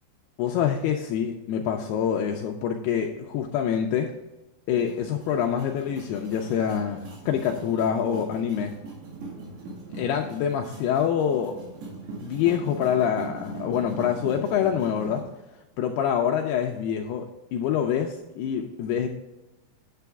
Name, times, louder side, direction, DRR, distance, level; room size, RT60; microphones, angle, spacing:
voice 1, 0.4-4.1 4.7-8.7 9.9-11.6 12.2-15.2 15.8-19.1, left 8 dB, 85° left, 3 dB, 2.3 m, -26 dB
sound 1, 4.7-15.2, right 3 dB, 70° right, 4.4 m, -41 dB
9.3 x 8.0 x 3.5 m, 1.0 s
omnidirectional pair, 5.3 m